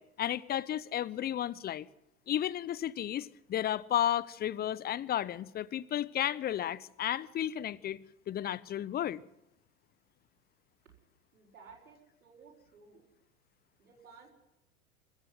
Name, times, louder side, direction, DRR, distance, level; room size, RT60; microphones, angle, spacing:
voice 1, 0.0-1.9 2.3-8.0 8.3-9.2, left 11 dB, 20° left, 0.7 m, -33 dB
voice 2, 11.3-13.0 13.8-14.3, right 5 dB, 75° right, 6.5 m, -56 dB
24.5 x 14.0 x 7.7 m
figure-of-eight pair, 90°, 45 cm